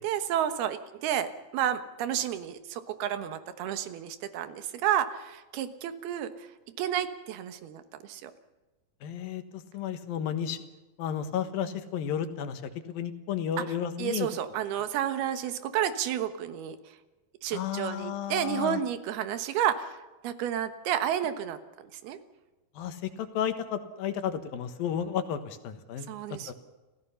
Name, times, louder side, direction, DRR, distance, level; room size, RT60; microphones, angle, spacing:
voice 1, 0.0-6.3 6.8-8.3 13.6-13.7 14.0-16.8 17.4-21.6 22.0-22.2 26.1-26.5, right 10 dB, 85° right, 10 dB, 3.3 m, -31 dB
voice 2, 9.0-10.6 11.0-12.6 12.9-14.3 17.5-18.8 22.8-26.1, left 9 dB, 70° left, 9 dB, 3.0 m, -32 dB
29.5 x 15.5 x 5.7 m, 1.1 s
omnidirectional pair, 4.4 m